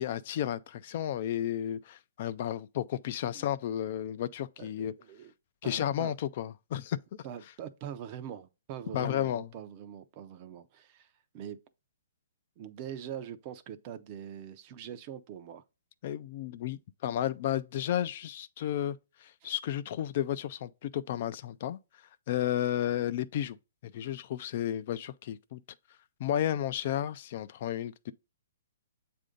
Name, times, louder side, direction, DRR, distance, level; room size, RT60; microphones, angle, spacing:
voice 1, 0.0-4.9 5.6-7.0 8.9-9.5 16.0-21.8 22.3-23.6 23.8-25.6 26.2-28.1, left 11 dB, 45° left, 0.3 m, -32 dB
voice 2, 4.6-5.3 5.6-6.2 7.2-11.6 12.6-15.6 19.4-19.5, right 9 dB, 35° right, 0.5 m, -43 dB
7.5 x 2.6 x 5.0 m
hypercardioid pair, 150°, 0 cm